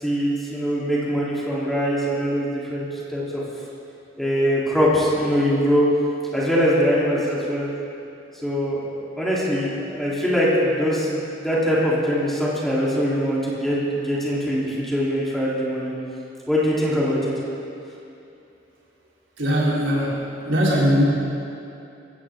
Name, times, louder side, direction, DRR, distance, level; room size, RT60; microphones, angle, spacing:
voice 1, 0.0-3.4 4.2-5.8 6.3-7.7 8.4-15.9 16.5-17.3, equal, ahead, -8 dB, 3.7 m, -22 dB
voice 2, 19.4-20.2 20.4-21.0, equal, 75° right, -5 dB, 4.0 m, -20 dB
21.5 x 17.0 x 3.8 m, 2.7 s
head